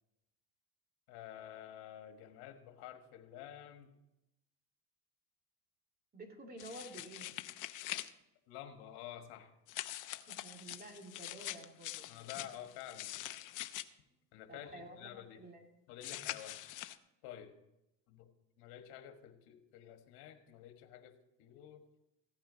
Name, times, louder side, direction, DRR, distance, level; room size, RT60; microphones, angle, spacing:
voice 1, 1.1-3.9 8.5-9.5 12.1-13.1 14.3-15.4 15.9-16.6 17.2-17.5 18.1-18.3 18.6-21.8, left 11 dB, 75° left, 6 dB, 1.6 m, -50 dB
voice 2, 6.1-7.3 10.3-12.1 14.5-15.6 16.1-16.3, right 1 dB, 25° right, 2 dB, 2.5 m, -51 dB
sound 1, 6.6-8.1 9.7-13.8 16.0-17.0, left 14 dB, 50° left, 0.7 m, -44 dB
15.5 x 9.0 x 4.0 m, 0.90 s
supercardioid pair, 105°, 39 cm